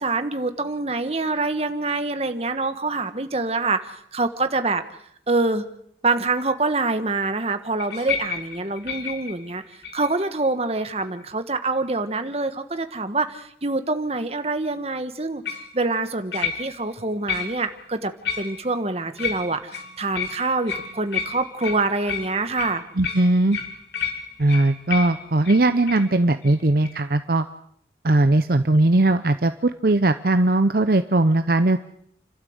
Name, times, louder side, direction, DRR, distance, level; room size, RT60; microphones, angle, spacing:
voice 1, 0.0-4.8 5.3-5.6 6.0-15.4 15.7-22.8, right 3 dB, 35° right, 9 dB, 1.4 m, -25 dB
sound 1, 7.8-10.3 10.8-11.2 15.5-15.7 16.3-16.9 17.3-17.8 18.2-18.8 19.2-26.1 26.4-26.6 26.8-27.0, left 6 dB, 75° left, 3.5 m, -32 dB
voice 2, 23.0-23.6 24.4-27.5 28.0-31.8, right 2 dB, 55° right, 9 dB, 0.8 m, -19 dB
29.5 x 12.5 x 7.9 m, 0.69 s
head